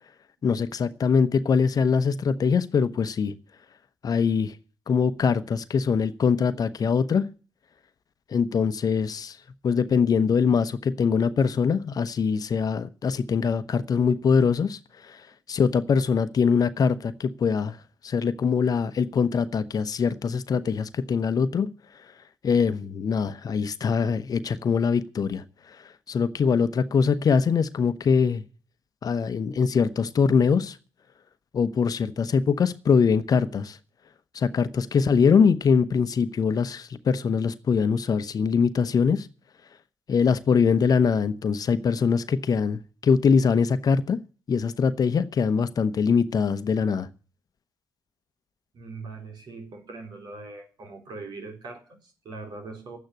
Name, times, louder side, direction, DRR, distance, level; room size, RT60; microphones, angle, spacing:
voice 1, 0.4-3.3 4.0-4.6 4.9-7.3 8.3-9.4 9.6-15.2 15.5-17.8 18.0-21.7 22.4-25.8 26.1-28.4 29.0-30.8 31.5-33.8 34.3-39.3 40.1-44.2 44.5-47.1, left 6 dB, 50° left, 1.0 m, -23 dB
voice 2, 48.7-53.0, right 3 dB, 65° right, 3.9 m, -41 dB
11.5 x 9.0 x 9.6 m
hypercardioid pair, 45°, 8 cm